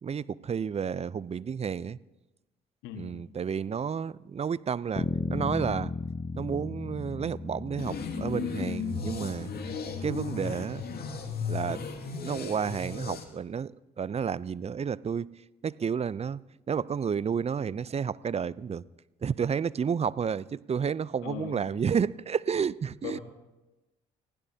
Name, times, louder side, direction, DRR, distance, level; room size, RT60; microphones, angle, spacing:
voice 1, 0.0-2.0 3.0-5.9 6.3-9.5 10.0-10.9 11.5-11.8 12.2-15.3 15.6-16.4 16.7-18.8 19.2-23.2, right 7 dB, 30° right, 0.6 m, -31 dB
voice 2, 2.8-3.2 21.2-21.6 23.0-23.2, left 10 dB, 75° left, 1.7 m, -38 dB
Bass guitar, 5.0-9.4, left 3 dB, 25° left, 0.7 m, -35 dB
sound 1, 7.8-13.2, left 5 dB, 50° left, 2.4 m, -35 dB
29.5 x 16.0 x 2.9 m
hypercardioid pair, 50°, 20 cm